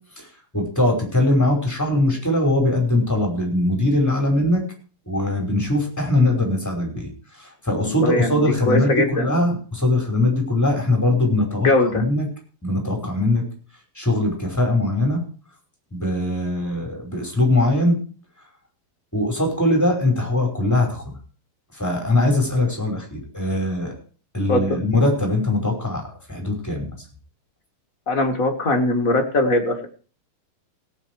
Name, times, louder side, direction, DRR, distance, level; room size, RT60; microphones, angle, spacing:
voice 1, 0.5-4.6 5.0-7.1 7.4-12.3 12.6-13.4 13.9-15.2 15.9-18.0 19.1-21.1 21.7-23.9 24.3-26.9, left 2 dB, 5° left, 2 dB, 5.0 m, -21 dB
voice 2, 7.8-9.4 11.6-12.0 24.5-24.8 28.1-29.9, left 2 dB, 35° left, 3 dB, 1.6 m, -21 dB
17.0 x 9.0 x 4.8 m, 0.39 s
omnidirectional pair, 4.1 m